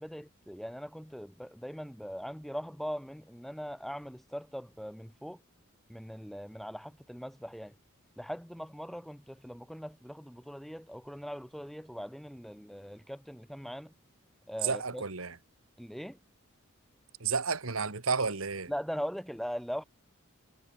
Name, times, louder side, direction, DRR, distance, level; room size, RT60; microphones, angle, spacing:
voice 1, 0.0-5.4 5.9-7.7 8.2-13.9 14.5-15.0 15.8-16.2 18.7-19.8, equal, ahead, 2.5 m, -40 dB
voice 2, 14.6-15.4 17.2-18.7, right 5 dB, 75° right, 2.0 m, -31 dB
head